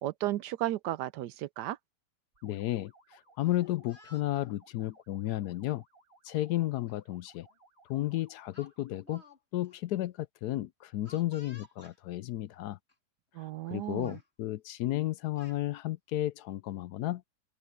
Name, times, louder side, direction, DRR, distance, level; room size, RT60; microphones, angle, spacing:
voice 1, 0.0-1.8 13.3-14.1, right 14 dB, 80° right, 1.2 m, -34 dB
sound 1, 2.3-9.2, right 3 dB, 50° right, 5.7 m, -63 dB
voice 2, 2.4-5.8 6.2-7.5 7.9-9.2 9.5-12.8 13.7-17.2, left 15 dB, 75° left, 1.0 m, -33 dB
Speech, 3.3-4.5 5.4-5.6 6.9-7.0 7.4-7.6 8.5-9.4 9.6-9.8 11.0-12.0 12.9-13.0 13.4-13.7 14.0-14.3 15.0-15.6, left 2 dB, 35° left, 4.1 m, -56 dB
open air
omnidirectional pair, 1.8 m